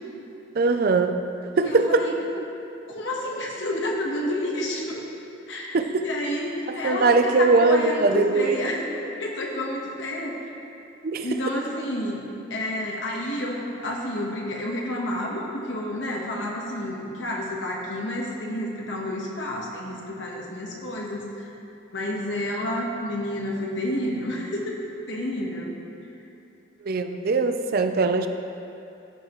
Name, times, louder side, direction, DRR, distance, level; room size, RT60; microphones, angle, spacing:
voice 1, 0.5-1.2 1.6-2.1 2.4-2.5 5.7-6.0 6.8-8.6 11.0-11.4 26.8-28.3, right 3 dB, 50° right, 8 dB, 0.4 m, -21 dB
voice 2, 1.6-2.1 2.9-5.0 5.5-10.5 11.2-12.2 12.5-21.5 21.9-24.8 25.1-25.7, left 1 dB, 70° left, -2 dB, 1.2 m, -30 dB
14.5 x 5.5 x 3.1 m, 2.9 s
head